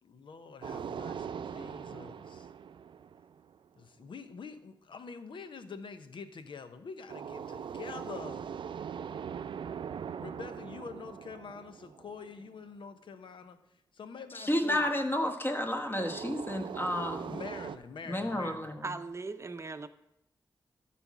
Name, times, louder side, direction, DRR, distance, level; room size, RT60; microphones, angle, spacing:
voice 1, 0.0-2.5 3.8-8.5 10.2-13.6 13.9-14.8 17.3-18.7, left 5 dB, 80° left, 0.8 m, -46 dB
sound 1, 0.6-3.7 7.1-12.5 16.0-17.8, right 7 dB, 80° right, 0.4 m, -41 dB
voice 2, 14.3-17.4 18.1-18.9, left 1 dB, 25° left, 1.3 m, -31 dB
voice 3, 18.8-19.9, right 3 dB, 35° right, 0.7 m, -38 dB
13.0 x 4.3 x 6.1 m
cardioid pair, 70°, 8 cm